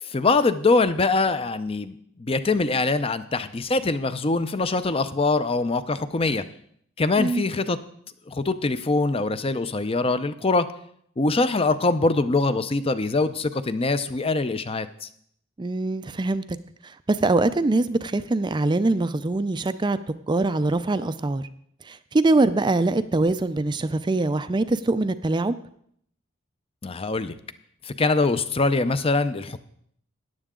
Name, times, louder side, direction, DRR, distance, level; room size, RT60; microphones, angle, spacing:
voice 1, 0.0-6.4 7.0-7.8 8.3-10.7 11.2-15.1 26.8-27.4 27.8-29.6, left 3 dB, 30° left, 12 dB, 0.6 m, -23 dB
voice 2, 15.6-16.6 16.8-20.0 20.3-21.5 21.8-25.5, right 2 dB, 25° right, 12 dB, 0.4 m, -23 dB
14.0 x 10.0 x 3.7 m, 0.67 s
head